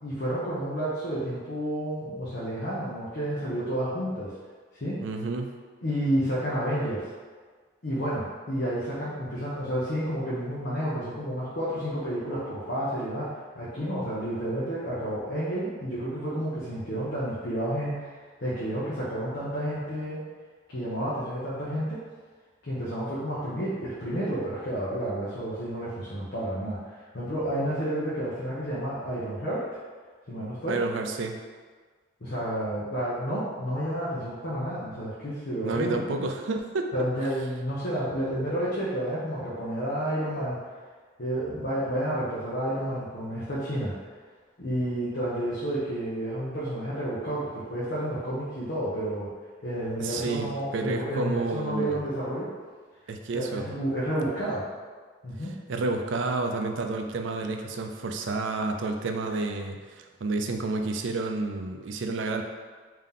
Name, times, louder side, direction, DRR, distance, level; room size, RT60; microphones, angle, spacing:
voice 1, 0.0-4.4 4.7-5.0 5.8-7.1 7.8-18.1 18.4-20.2 20.7-22.0 22.6-29.7 30.3-30.8 32.2-36.0 36.9-40.6 41.2-43.9 44.6-49.3 49.6-52.5 53.3-54.6 55.2-55.5, right 1 dB, 55° left, -9 dB, 0.8 m, -30 dB
voice 2, 5.0-5.5 30.7-31.3 35.6-36.9 50.0-52.0 53.1-53.6 55.7-62.4, right 3 dB, 70° right, 4 dB, 0.4 m, -30 dB
3.7 x 2.8 x 3.6 m, 1.5 s
head